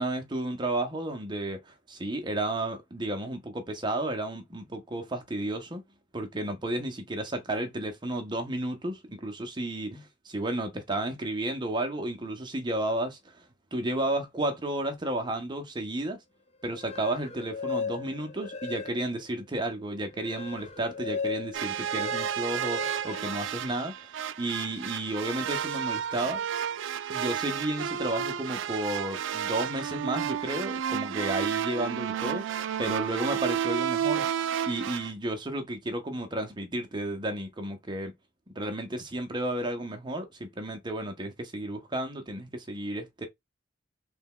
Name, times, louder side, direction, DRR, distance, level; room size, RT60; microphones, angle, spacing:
voice 1, 0.0-5.8 6.1-13.4 13.7-16.2 16.6-23.9 24.4-26.4 27.1-34.2 34.7-38.1 38.5-43.3, right 1 dB, 25° right, 0.6 m, -32 dB
sound 1, 16.6-19.3 19.7-24.1, left 5 dB, 35° left, 0.5 m, -38 dB
sound 2, 21.5-35.1, right 9 dB, 75° right, 0.3 m, -31 dB
3.3 x 2.2 x 3.6 m
head